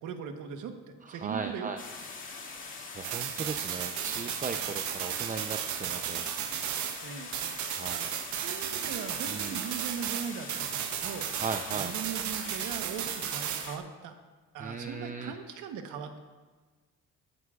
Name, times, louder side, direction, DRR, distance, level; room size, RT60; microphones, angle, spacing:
voice 1, 0.0-1.7 4.6-4.7 7.0-7.3 8.4-11.3 11.7-14.1 14.5-16.2, right 7 dB, 90° right, 6 dB, 1.2 m, -39 dB
voice 2, 1.0-1.8 2.9-6.2 7.7-8.1 9.3-9.6 11.4-11.9 14.6-15.3, right 5 dB, 25° right, 6 dB, 0.6 m, -37 dB
sound 1, 1.8-13.8, left 4 dB, 40° left, 2.2 m, -43 dB
sound 2, 3.0-7.1 7.3-13.7, right 11 dB, 70° right, 0.7 m, -35 dB
20.0 x 12.5 x 2.4 m, 1.4 s
cardioid pair, 90°, 30 cm